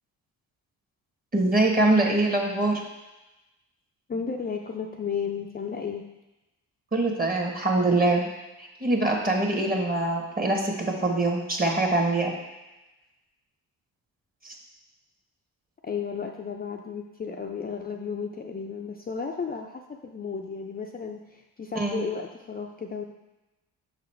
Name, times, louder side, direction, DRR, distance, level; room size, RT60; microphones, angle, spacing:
voice 1, 1.3-2.8 6.9-8.3 8.6-12.3 14.4-14.5 21.7-22.0, right 2 dB, 25° right, 1 dB, 1.4 m, -24 dB
voice 2, 4.1-6.1 15.8-23.0, left 6 dB, 25° left, 1 dB, 0.5 m, -33 dB
6.0 x 4.1 x 4.4 m, 1.0 s
supercardioid pair, 65°, 35 cm